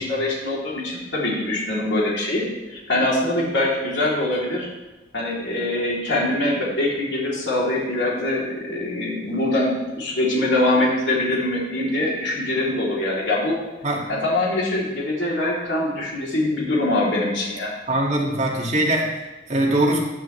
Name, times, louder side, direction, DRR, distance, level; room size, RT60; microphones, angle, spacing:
voice 1, 0.0-2.4 2.7-4.7 5.1-13.6 14.1-17.7, left 1 dB, 75° left, -5 dB, 3.3 m, -23 dB
voice 2, 17.9-20.0, right 1 dB, 40° right, -2 dB, 2.2 m, -22 dB
14.5 x 9.5 x 3.3 m, 1.1 s
head